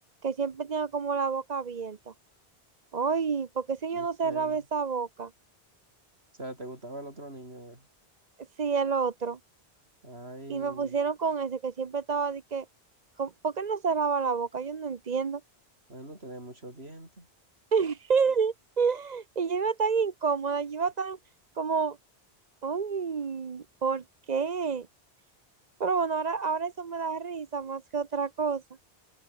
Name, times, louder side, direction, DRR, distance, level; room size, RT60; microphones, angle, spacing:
voice 1, 0.2-2.1 2.9-5.3 8.6-9.4 10.5-12.6 13.2-15.4 17.7-21.2 21.6-22.0 22.6-24.9 25.8-28.6, right 5 dB, 45° right, 0.9 m, -29 dB
voice 2, 3.9-4.6 6.4-7.9 10.0-11.0 15.9-17.3, right 1 dB, 75° right, 7.5 m, -43 dB
omnidirectional pair, 1.1 m